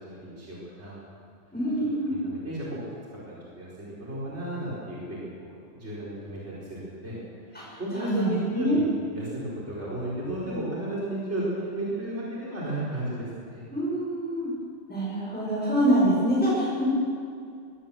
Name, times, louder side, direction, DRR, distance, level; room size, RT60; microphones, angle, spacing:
voice 1, 0.0-1.0 2.1-2.7 3.2-7.2 7.5-13.6, right 1 dB, 50° right, -7 dB, 5.0 m, -34 dB
voice 2, 1.5-2.1 7.5-8.8 13.7-14.5 14.9-16.8, right 1 dB, 5° left, -6 dB, 5.7 m, -25 dB
23.0 x 16.5 x 7.5 m, 2.4 s
omnidirectional pair, 1.5 m